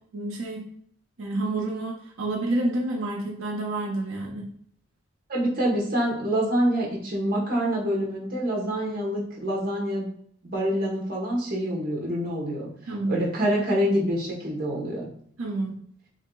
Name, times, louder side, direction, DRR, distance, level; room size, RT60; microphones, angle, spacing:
voice 1, 0.1-0.6 1.2-4.5 12.9-13.2 15.4-15.7, right 2 dB, 85° right, -1 dB, 0.7 m, -29 dB
voice 2, 5.3-10.1 10.4-12.7 13.1-15.0, equal, 45° right, -3 dB, 1.1 m, -26 dB
3.2 x 2.7 x 3.8 m, 0.63 s
head